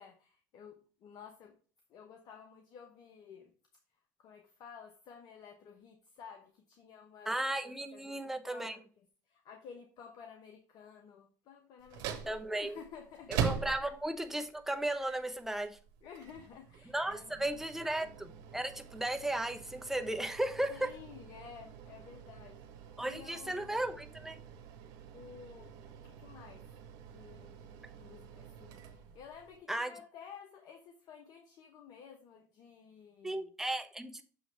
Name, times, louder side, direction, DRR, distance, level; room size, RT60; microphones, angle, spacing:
voice 1, 0.0-1.6 1.9-3.5 4.2-7.3 7.6-13.3 13.8-13.9 16.0-17.9 18.7-18.8 20.7-23.8 25.1-26.7 27.1-33.5, left 7 dB, 60° left, 1.0 m, -53 dB
voice 2, 7.3-8.8 12.3-12.8 13.4-15.8 16.9-20.9 23.0-24.4 29.7-29.9 33.2-34.2, right 1 dB, 5° right, 0.9 m, -35 dB
sound 1, 11.8-29.6, right 8 dB, 70° right, 1.1 m, -44 dB
6.9 x 3.1 x 5.5 m
supercardioid pair, 90°, 8 cm